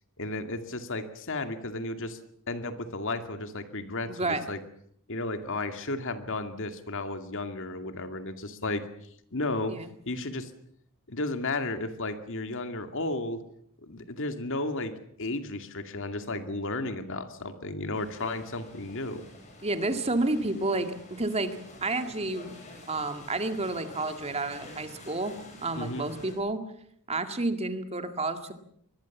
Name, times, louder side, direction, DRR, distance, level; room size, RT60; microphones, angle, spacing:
voice 1, 0.2-2.2 2.5-4.6 5.1-8.8 9.3-10.5 11.1-13.4 13.8-19.3 25.8-26.1, left 2 dB, 60° left, 8 dB, 2.3 m, -33 dB
voice 2, 4.1-4.4 9.7-9.9 19.6-22.5 22.9-25.3 25.6-26.6 27.1-28.5, right 2 dB, 30° right, 8 dB, 2.1 m, -30 dB
sound 1, 17.9-26.3, left 1 dB, 35° left, 7.9 m, -48 dB
24.5 x 21.0 x 7.3 m, 0.68 s
head